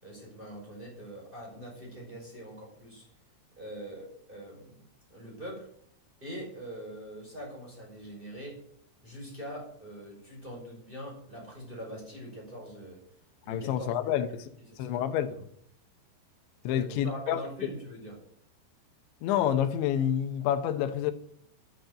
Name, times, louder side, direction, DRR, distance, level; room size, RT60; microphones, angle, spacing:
voice 1, 0.0-3.1 3.6-4.8 5.1-5.7 6.2-8.6 9.0-13.0 13.4-13.9 14.6-15.0 15.3-15.4 16.6-18.2, equal, 10° right, 5.3 m, -43 dB
voice 2, 13.5-14.4 14.8-15.3 16.6-17.4 19.2-21.1, left 10 dB, 75° left, 3.0 m, -28 dB
10.5 x 10.5 x 7.7 m
omnidirectional pair, 5.7 m